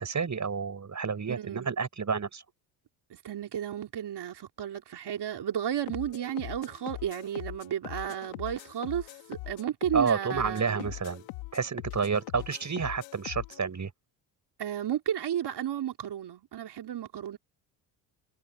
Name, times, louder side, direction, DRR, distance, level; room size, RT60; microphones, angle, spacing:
voice 1, 0.0-2.4 9.9-11.2 11.5-13.9, right 5 dB, 35° right, 7.6 m, -30 dB
voice 2, 1.3-1.7 3.1-10.9 14.6-17.4, right 10 dB, 55° right, 3.6 m, -33 dB
sound 1, 5.9-13.6, left 22 dB, 85° left, 3.9 m, -42 dB
supercardioid pair, 65°, 48 cm